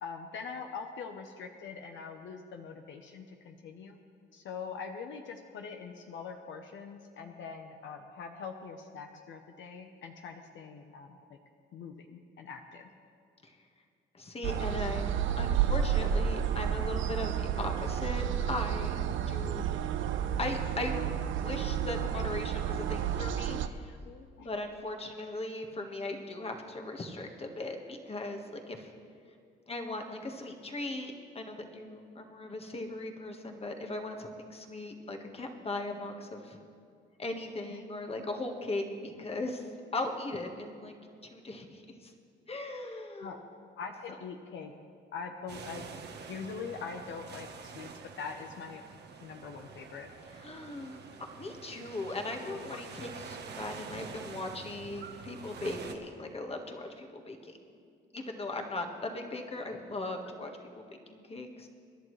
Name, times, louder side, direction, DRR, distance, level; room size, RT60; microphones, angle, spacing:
voice 1, 0.0-4.0 4.3-11.2 11.7-12.9 16.4-16.5 24.0-24.5 25.2-25.3 37.7-37.8 43.2-43.4 43.8-44.7 45.1-45.8 46.3-47.9 48.2-48.8 49.2-50.1 51.5-51.6 52.5-52.8, left 5 dB, 70° left, 4 dB, 0.9 m, -43 dB
voice 2, 14.1-19.6 20.4-20.9 21.4-24.0 24.4-28.9 29.7-36.6 37.2-40.9 41.2-42.1 42.5-43.4 50.4-51.0 51.3-57.6 58.1-61.7, left 2 dB, 30° left, 3 dB, 1.6 m, -38 dB
sound 1, 14.4-23.7, right 9 dB, 75° right, 0.7 m, -31 dB
sound 2, 45.5-55.9, right 5 dB, 55° right, 1.3 m, -47 dB
25.0 x 11.0 x 3.3 m, 2.3 s
cardioid pair, 90°, 20 cm